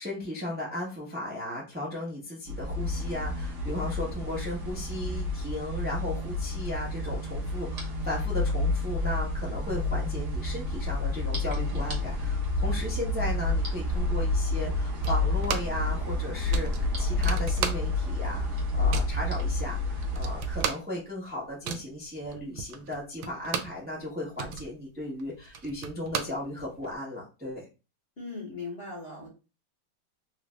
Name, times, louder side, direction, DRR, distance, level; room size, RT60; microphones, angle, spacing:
voice 1, 0.0-27.7, left 1 dB, 10° right, -5 dB, 0.5 m, -36 dB
sound 1, 2.5-20.6, left 2 dB, 50° right, 1.1 m, -29 dB
sound 2, 15.0-15.9 16.1-16.2 16.5-18.2 18.5-19.2 19.7-19.8 20.0-23.9 24.2-26.9, right 8 dB, 90° right, 1.3 m, -35 dB
voice 2, 28.2-29.3, left 3 dB, 40° left, -3 dB, 1.2 m, -38 dB
3.2 x 2.5 x 3.2 m, 0.30 s
omnidirectional pair, 2.1 m